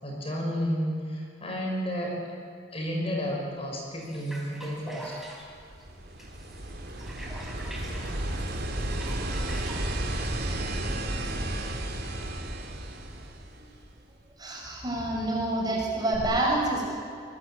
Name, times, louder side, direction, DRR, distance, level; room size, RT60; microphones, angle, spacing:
voice 1, 0.0-2.3 2.7-5.2, equal, 30° left, -1 dB, 5.9 m, -31 dB
sound 1, 4.0-11.4, right 1 dB, ahead, 4.3 m, -45 dB
sound 2, 5.5-14.0 16.1-16.2, right 1 dB, 55° right, 3.1 m, -33 dB
voice 2, 14.4-16.9, right 1 dB, 20° right, -1 dB, 6.1 m, -27 dB
27.5 x 21.0 x 8.7 m, 2.4 s
head